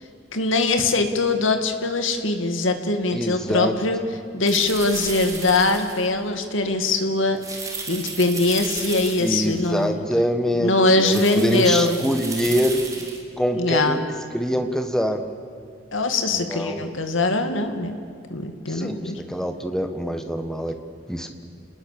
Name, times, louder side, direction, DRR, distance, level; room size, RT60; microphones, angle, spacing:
voice 1, 0.3-4.0 4.3-7.4 7.9-10.0 10.6-12.0 13.6-14.0 15.9-18.0 18.3-19.2, left 2 dB, 80° left, 6 dB, 2.2 m, -22 dB
voice 2, 3.1-3.7 9.2-12.8 13.4-14.0 14.3-15.2 16.3-16.9 18.7-20.8 21.1-21.3, equal, 5° left, 6 dB, 1.4 m, -24 dB
sound 1, 4.4-6.1 7.4-9.7 11.0-13.2, right 3 dB, 15° right, 3.5 m, -34 dB
28.5 x 19.5 x 6.9 m, 2.5 s
head